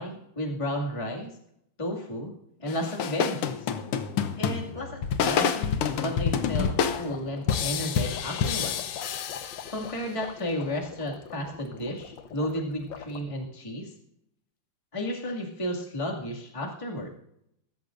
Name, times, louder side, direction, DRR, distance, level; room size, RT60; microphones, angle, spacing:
voice 1, 0.0-1.3 1.8-2.3 2.6-3.7 4.4-8.8 9.7-13.9 14.9-17.1, left 1 dB, 15° left, -1 dB, 2.2 m, -33 dB
sound 1, 2.7-10.1, left 7 dB, 85° left, 1.9 m, -28 dB
sound 2, 6.6-13.2, left 8 dB, 60° left, 1.6 m, -44 dB
23.5 x 13.0 x 2.6 m, 0.76 s
omnidirectional pair, 2.4 m